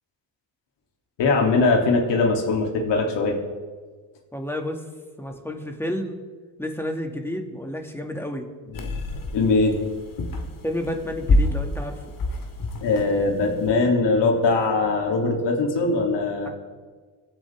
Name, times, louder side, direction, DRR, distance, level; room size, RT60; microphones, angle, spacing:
voice 1, 1.2-3.4 8.8-8.9 9.3-9.8 12.8-16.5, left 3 dB, 60° left, 0 dB, 3.4 m, -21 dB
voice 2, 4.3-4.8 5.2-6.2 6.6-8.5 10.6-12.0 16.4-16.5, left 1 dB, 5° left, 3 dB, 2.5 m, -30 dB
sound 1, 8.7-13.7, left 2 dB, 45° left, 2.5 m, -27 dB
25.0 x 9.9 x 3.8 m, 1.5 s
supercardioid pair, 65°, 47 cm